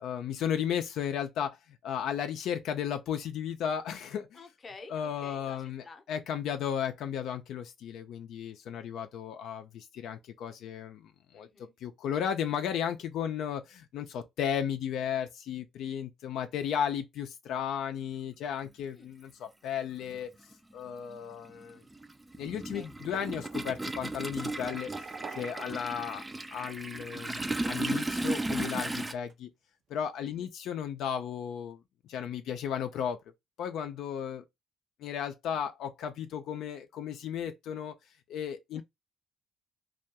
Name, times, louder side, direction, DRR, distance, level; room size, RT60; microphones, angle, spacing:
voice 1, 0.0-1.5 1.8-4.2 4.9-9.6 10.0-11.0 11.3-11.5 11.8-13.6 13.9-19.3 19.6-20.3 20.7-21.7 22.4-24.9 25.4-26.2 26.5-29.5 29.9-31.8 32.1-33.2 33.6-34.4 35.0-37.9 38.3-38.8, left 8 dB, 80° left, 0.3 m, -34 dB
voice 2, 4.3-6.0 11.3-11.7 16.3-16.7 18.9-19.1 22.4-22.9 28.9-29.1 30.2-30.5 38.7-38.8, left 3 dB, 35° left, 0.6 m, -51 dB
Toilet flush, 18.6-18.7 20.0-20.2 20.5-29.1, right 2 dB, 15° right, 0.3 m, -35 dB
sound 1, 21.8-22.5 22.7-23.9 24.4-26.1 27.2-27.3 28.9-29.0 29.3-29.4, right 6 dB, 65° right, 0.6 m, -47 dB
2.3 x 2.2 x 2.7 m
cardioid pair, 90°, 0 cm